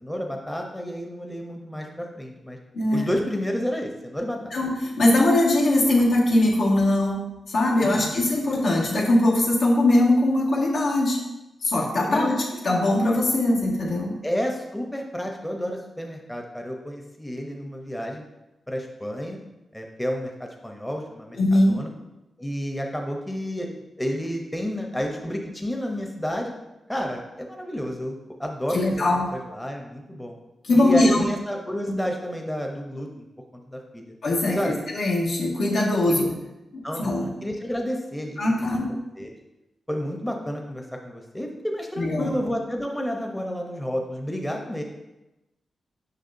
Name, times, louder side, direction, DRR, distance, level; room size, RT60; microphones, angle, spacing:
voice 1, 0.0-2.6 2.9-4.5 7.8-8.2 12.0-12.4 14.2-18.2 18.7-19.4 19.7-21.4 21.7-21.9 22.4-26.5 26.9-30.4 30.7-33.2 33.7-34.1 34.5-34.8 36.1-36.2 36.8-38.4 39.2-39.3 39.9-44.8, equal, 10° left, 2 dB, 0.6 m, -30 dB
voice 2, 2.7-3.1 4.5-7.2 7.5-11.2 11.6-12.3 12.6-14.1 21.3-21.7 28.7-29.3 30.7-31.2 34.2-36.3 36.7-37.3 38.4-38.9 42.0-42.3, left 1 dB, 85° left, -5 dB, 1.6 m, -21 dB
6.6 x 5.8 x 2.6 m, 0.98 s
wide cardioid pair, 120°, 0 cm